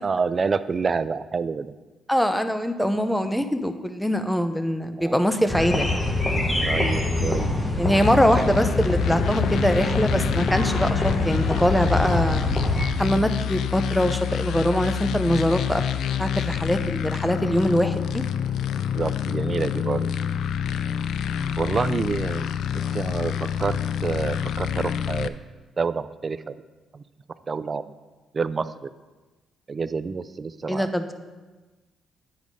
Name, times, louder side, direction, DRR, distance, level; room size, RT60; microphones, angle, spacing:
voice 1, 0.0-1.7 5.0-5.2 6.6-7.5 7.8-8.1 13.0-13.3 18.9-20.1 21.6-22.5 22.9-25.3 25.8-26.6 26.9-27.0 27.5-27.8 28.3-28.9 29.7-30.9, right 5 dB, 35° right, 14 dB, 0.4 m, -28 dB
voice 2, 2.1-6.0 7.8-12.5 13.0-15.8 16.2-18.2 30.7-31.1, equal, 5° left, 9 dB, 0.6 m, -23 dB
sound 1, 5.5-12.9, left 2 dB, 20° left, 1.1 m, -25 dB
sound 2, 8.0-25.3, left 8 dB, 75° left, 0.3 m, -27 dB
9.3 x 4.7 x 5.4 m, 1.2 s
cardioid pair, 90°, 0 cm